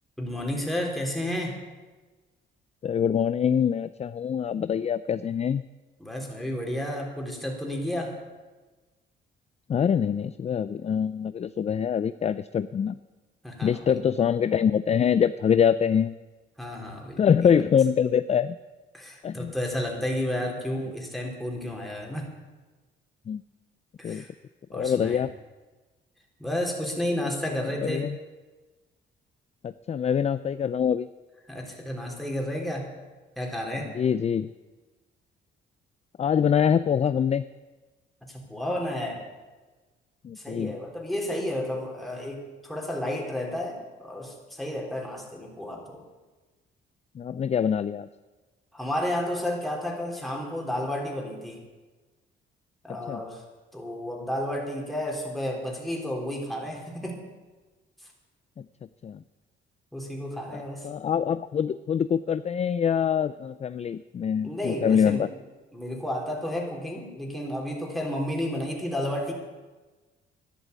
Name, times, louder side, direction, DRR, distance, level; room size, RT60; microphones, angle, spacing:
voice 1, 0.2-1.6 6.0-8.1 13.4-14.0 16.6-17.6 18.9-22.3 24.0-24.3 24.7-25.2 26.4-28.1 31.5-32.8 33.4-33.9 38.2-39.2 40.4-46.0 48.7-51.6 52.8-53.4 53.7-57.2 58.0-58.1 59.9-60.9 64.4-65.3 65.7-69.3, left 1 dB, ahead, -1 dB, 3.8 m, -32 dB
voice 2, 2.8-5.6 9.7-13.0 13.6-16.1 17.2-18.6 19.2-19.5 23.3-23.4 24.0-24.2 24.7-25.3 27.8-28.2 29.6-31.1 34.0-34.5 36.2-37.4 40.2-40.7 47.2-48.1 53.1-53.2 59.0-59.2 60.5-65.3, left 8 dB, 35° left, 14 dB, 0.4 m, -24 dB
11.5 x 11.0 x 8.3 m, 1.2 s
cardioid pair, 90°, 20 cm